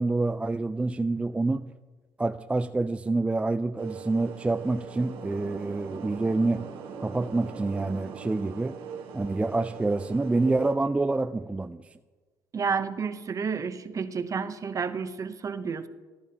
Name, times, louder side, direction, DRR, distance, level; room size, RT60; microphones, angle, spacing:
voice 1, 0.0-1.7 2.2-6.7 7.0-8.8 9.1-11.8, right 2 dB, 15° right, 9 dB, 0.3 m, -27 dB
sound 1, 3.8-10.7, right 6 dB, 70° right, 1.3 m, -40 dB
voice 2, 12.5-15.9, right 5 dB, 40° right, 11 dB, 0.7 m, -30 dB
14.0 x 12.0 x 2.8 m, 1.4 s
supercardioid pair, 70°, 9 cm